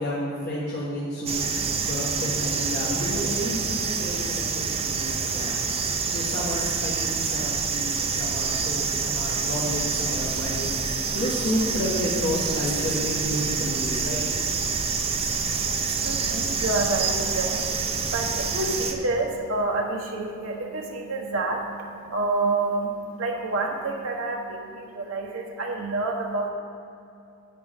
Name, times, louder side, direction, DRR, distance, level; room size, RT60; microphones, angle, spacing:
voice 1, 0.0-1.4 1.8-5.6 6.1-10.7 11.1-14.2, equal, 50° left, -7 dB, 1.4 m, -30 dB
sound 1, 1.3-18.9, right 5 dB, 30° right, 0.6 m, -27 dB
voice 2, 16.0-26.5, right 2 dB, 75° right, 0 dB, 1.2 m, -28 dB
10.5 x 8.7 x 3.6 m, 2.7 s
head